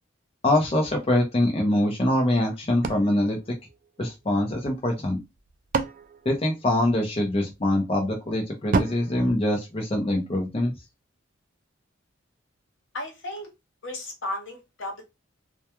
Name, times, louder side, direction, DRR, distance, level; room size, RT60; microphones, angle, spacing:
voice 1, 0.4-3.4 4.0-5.2 6.3-10.7, left 1 dB, 30° left, 1 dB, 0.5 m, -24 dB
sound 1, 2.8-4.4 5.2-7.2 8.7-10.3, right 4 dB, 40° right, 0.3 m, -32 dB
voice 2, 12.9-13.5 13.8-15.0, left 1 dB, 75° left, 1 dB, 1.0 m, -34 dB
2.2 x 2.2 x 2.9 m, 0.22 s
head